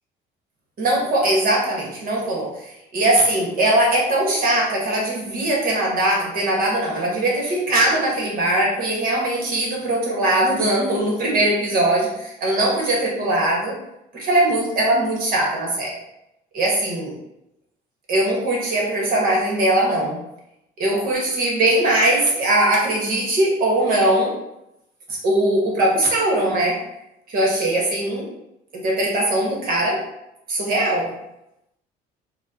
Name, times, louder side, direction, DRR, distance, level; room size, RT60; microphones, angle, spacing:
voice 1, 0.8-13.7 14.1-15.9 16.5-17.1 18.1-20.2 20.8-24.3 25.2-26.8 27.3-28.3 28.7-30.0 30.5-31.1, right 1 dB, 60° right, -3 dB, 1.4 m, -20 dB
4.5 x 2.3 x 2.8 m, 0.85 s
cardioid pair, 110°, 17 cm